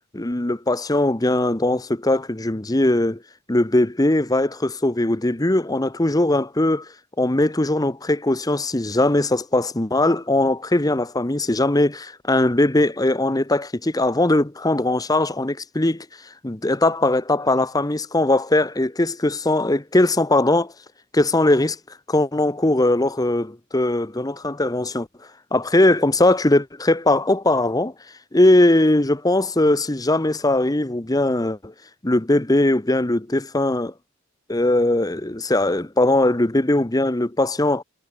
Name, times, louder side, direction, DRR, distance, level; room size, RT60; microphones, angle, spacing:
voice 1, 0.1-3.2 3.5-6.9 7.2-16.0 16.4-20.7 21.1-21.8 22.1-25.1 25.5-27.9 28.3-31.7 32.0-33.9 34.5-37.8, left 1 dB, 15° left, 0.9 m, -20 dB
head